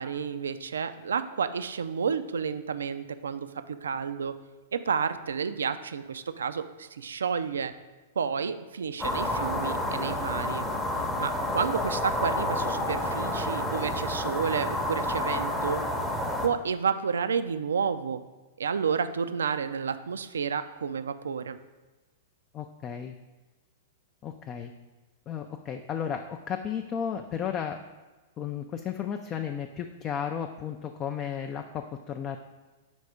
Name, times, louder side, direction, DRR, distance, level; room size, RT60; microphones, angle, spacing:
voice 1, 0.0-4.3 4.7-7.7 8.2-10.7 11.2-15.8 16.4-18.2 18.6-21.6, right 6 dB, 70° right, 11 dB, 0.3 m, -30 dB
sound 1, 9.0-16.5, left 1 dB, 5° left, 0.7 m, -29 dB
voice 2, 22.5-23.1 24.2-24.7 25.3-27.8 28.4-32.4, left 8 dB, 30° left, 5 dB, 0.3 m, -34 dB
5.2 x 4.2 x 4.8 m, 1.2 s
figure-of-eight pair, 105°, 0 cm